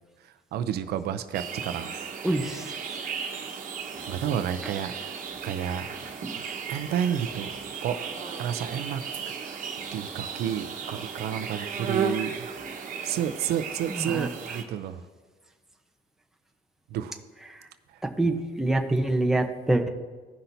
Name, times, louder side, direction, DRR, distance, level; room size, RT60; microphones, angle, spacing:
voice 1, 0.5-1.9 4.1-4.9 5.4-5.9 6.3-7.5 7.8-8.0 8.4-9.0 9.4-12.5 13.0-15.0 16.9-17.2, right 9 dB, 70° right, 9 dB, 0.6 m, -30 dB
sound 1, 1.3-14.6, right 6 dB, 50° right, 1.3 m, -35 dB
voice 2, 2.2-2.6 13.9-14.3 18.2-19.9, right 2 dB, 5° right, 3 dB, 0.9 m, -25 dB
16.5 x 5.7 x 2.7 m, 1.4 s
cardioid pair, 110°, 17 cm